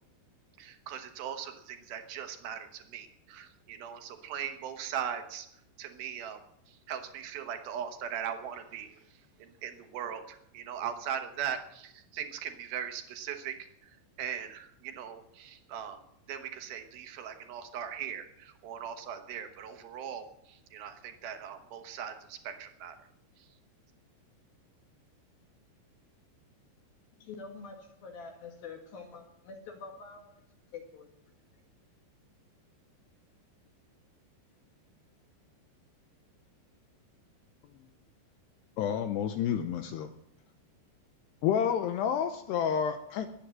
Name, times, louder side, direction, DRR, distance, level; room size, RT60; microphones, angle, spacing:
voice 1, 0.6-5.5 5.8-6.4 6.7-16.0 16.3-23.1 23.4-23.5, right 9 dB, 70° right, 7 dB, 2.5 m, -39 dB
voice 2, 27.2-30.4 30.7-31.1, left 4 dB, 60° left, 3 dB, 3.1 m, -46 dB
voice 3, 38.8-40.1 41.4-43.3, left 8 dB, 80° left, 8 dB, 2.6 m, -29 dB
21.0 x 8.5 x 7.6 m, 0.76 s
omnidirectional pair, 5.5 m